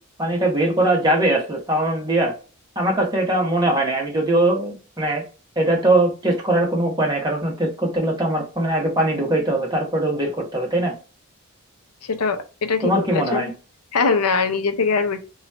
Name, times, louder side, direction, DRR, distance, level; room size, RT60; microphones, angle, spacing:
voice 1, 0.2-2.3 2.8-5.2 5.6-10.9 12.8-13.5, right 1 dB, 20° right, -1 dB, 1.0 m, -21 dB
voice 2, 12.1-13.5 13.9-15.2, left 4 dB, 90° left, 7 dB, 0.6 m, -22 dB
3.0 x 2.3 x 4.1 m, 0.34 s
head